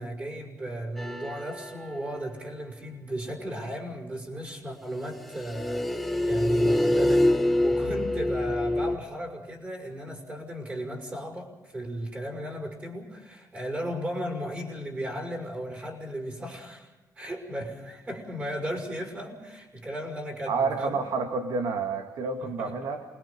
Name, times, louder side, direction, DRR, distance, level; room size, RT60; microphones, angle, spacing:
voice 1, 0.0-16.9 17.2-21.0 22.6-22.7, equal, 25° right, 2 dB, 5.6 m, -35 dB
sound 1, 1.0-2.0 5.3-9.0, left 1 dB, ahead, 1.3 m, -25 dB
voice 2, 20.5-23.0, right 4 dB, 80° right, 5 dB, 1.9 m, -29 dB
28.0 x 21.0 x 5.4 m, 1.1 s
cardioid pair, 135°, 7 cm